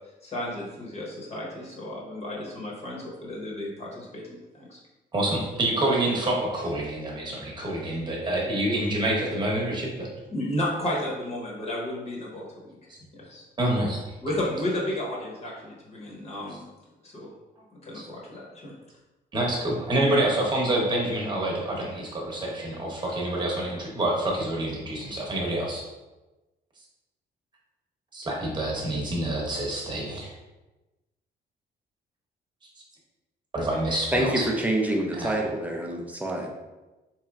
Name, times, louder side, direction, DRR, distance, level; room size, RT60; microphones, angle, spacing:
voice 1, 0.2-4.2 4.5-4.8 10.3-13.4 14.2-16.6 17.0-17.3 17.8-18.7, left 1 dB, 35° left, -4 dB, 1.0 m, -33 dB
voice 2, 5.1-10.1 12.9-13.0 13.6-14.0 17.9-18.0 19.3-25.8 28.1-30.3 33.5-34.5 35.1-35.3, right 1 dB, 25° right, -2 dB, 1.0 m, -27 dB
voice 3, 34.1-36.5, right 1 dB, 10° right, 0 dB, 0.5 m, -26 dB
4.2 x 3.0 x 2.4 m, 1.1 s
cardioid pair, 135°, 18 cm